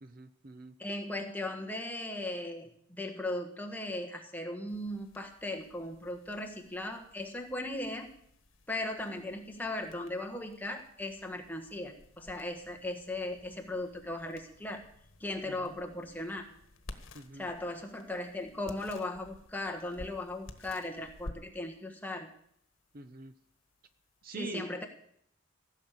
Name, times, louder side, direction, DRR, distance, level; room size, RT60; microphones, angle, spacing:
voice 1, 0.0-0.7 15.5-15.8 17.1-17.5 22.9-23.3 24.2-24.7, right 4 dB, 45° right, 10 dB, 0.6 m, -44 dB
voice 2, 0.8-8.1 8.7-14.8 15.2-16.4 17.3-22.3 24.4-24.9, left 1 dB, 10° left, 2 dB, 1.4 m, -38 dB
sound 1, 4.7-24.3, left 2 dB, 75° left, 1.3 m, -54 dB
16.0 x 6.5 x 8.5 m, 0.70 s
head